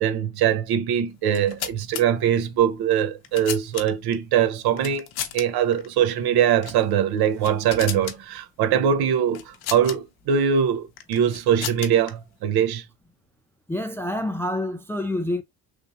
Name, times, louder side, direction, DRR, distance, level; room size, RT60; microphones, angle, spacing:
voice 1, 0.0-5.0 5.3-12.8, right 8 dB, 70° right, 0.8 m, -22 dB
sound 1, 1.2-2.0 2.9-4.1 4.8-5.4 5.7-5.9 6.6-6.8 7.2-8.2 9.3-10.0 11.0-12.1, left 10 dB, 70° left, 0.7 m, -34 dB
voice 2, 13.7-15.4, left 1 dB, 5° left, 0.3 m, -27 dB
3.4 x 2.7 x 2.6 m
supercardioid pair, 80°, 40 cm